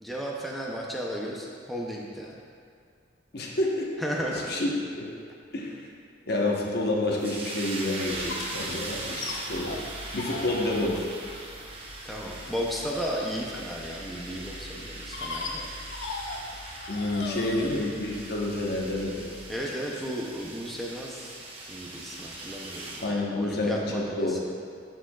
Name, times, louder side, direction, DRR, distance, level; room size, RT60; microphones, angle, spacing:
voice 1, 0.0-2.4 4.0-4.5 10.7-11.0 12.0-15.7 19.5-21.3 21.7-24.5, equal, ahead, -3 dB, 0.5 m, -34 dB
voice 2, 3.3-3.9 4.3-4.7 5.0-5.1 5.5-5.8 6.3-9.7 10.1-11.1 16.9-19.3 23.0-24.3, left 1 dB, 60° left, -2 dB, 1.0 m, -29 dB
sound 1, 7.2-23.1, right 2 dB, 30° right, 0.8 m, -40 dB
sound 2, 8.1-19.6, left 3 dB, 80° left, 0.8 m, -40 dB
13.5 x 4.5 x 2.3 m, 2.3 s
head